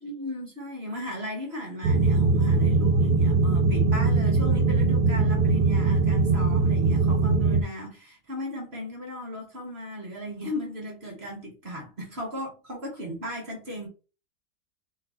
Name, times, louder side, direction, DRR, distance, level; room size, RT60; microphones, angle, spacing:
voice 1, 0.0-13.9, equal, 45° right, 1.5 m, -36 dB
sound 1, 1.8-7.6, right 3 dB, 85° right, 1.2 m, -21 dB
4.4 x 3.2 x 3.6 m
omnidirectional pair, 1.7 m